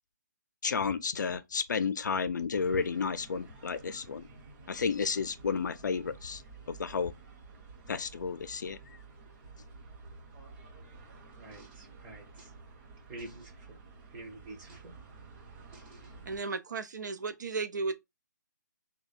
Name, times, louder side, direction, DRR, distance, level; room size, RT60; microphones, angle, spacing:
voice 1, 0.6-4.3 4.7-6.4 6.7-7.1 7.9-9.0, left 5 dB, 70° left, 0.5 m, -32 dB
sound 1, 2.5-16.4, right 4 dB, 40° right, 0.8 m, -52 dB
voice 2, 11.4-12.5 13.1-13.8 14.1-14.9 15.7-16.0, right 2 dB, 10° right, 0.6 m, -48 dB
voice 3, 16.3-17.9, right 4 dB, 70° right, 0.6 m, -34 dB
3.0 x 2.2 x 4.0 m
hypercardioid pair, 165°, 10 cm